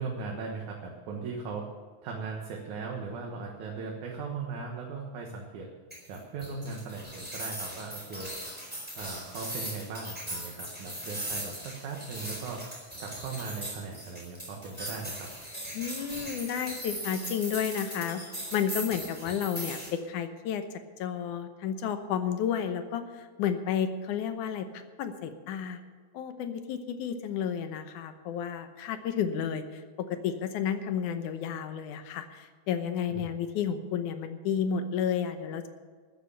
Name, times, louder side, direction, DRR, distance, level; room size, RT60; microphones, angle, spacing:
voice 1, 0.0-1.7 2.0-5.7 6.1-8.3 9.0-12.6 13.0-15.3 33.1-33.3, right 4 dB, 75° right, 0 dB, 2.8 m, -38 dB
sound 1, 5.9-19.9, equal, 5° right, 3.9 m, -39 dB
voice 2, 15.7-18.2 18.5-20.6 21.0-24.7 25.0-25.8 26.1-35.7, left 8 dB, 90° left, 8 dB, 2.5 m, -31 dB
13.5 x 9.6 x 6.9 m, 1.5 s
omnidirectional pair, 3.5 m